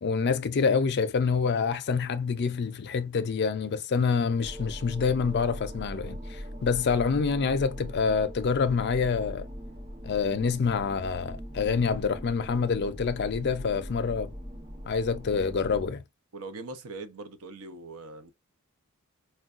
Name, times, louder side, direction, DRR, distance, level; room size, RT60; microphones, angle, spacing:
voice 1, 0.0-9.5 10.0-14.3 14.9-16.0, left 5 dB, 50° left, 0.4 m, -27 dB
sound 1, 4.4-15.9, equal, 20° right, 0.7 m, -41 dB
voice 2, 16.3-18.3, right 3 dB, 75° right, 0.6 m, -41 dB
4.4 x 2.2 x 2.4 m
head